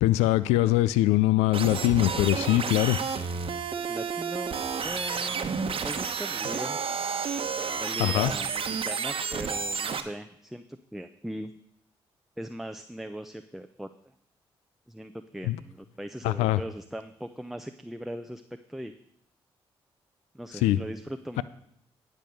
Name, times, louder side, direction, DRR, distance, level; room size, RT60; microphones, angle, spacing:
voice 1, 0.0-3.0 8.0-8.3 15.4-15.6 16.2-16.6 20.6-20.8 21.4-21.5, left 15 dB, 90° left, 17 dB, 0.4 m, -22 dB
sound 1, 1.5-10.0, right 6 dB, 55° right, 1.0 m, -31 dB
voice 2, 3.8-6.8 7.8-11.5 12.4-13.9 14.9-18.4 18.7-19.0 20.3-21.4, equal, ahead, 8 dB, 0.6 m, -39 dB
10.5 x 5.3 x 7.6 m, 0.71 s
supercardioid pair, 55°, 11 cm